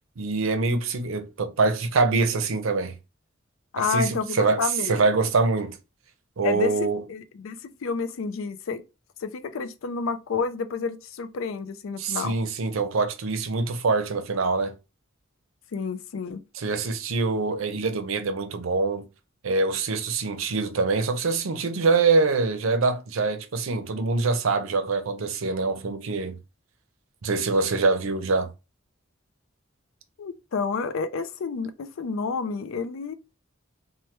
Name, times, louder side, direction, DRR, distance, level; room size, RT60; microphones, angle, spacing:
voice 1, 0.2-3.0 3.8-5.8 6.4-7.0 12.0-14.7 16.5-19.1 19.4-26.4 27.2-28.5, right 3 dB, 85° right, 0.6 m, -24 dB
voice 2, 3.7-4.9 6.4-8.8 9.2-12.3 15.7-16.4 30.2-33.1, left 5 dB, 80° left, 0.4 m, -30 dB
3.2 x 2.1 x 2.9 m
head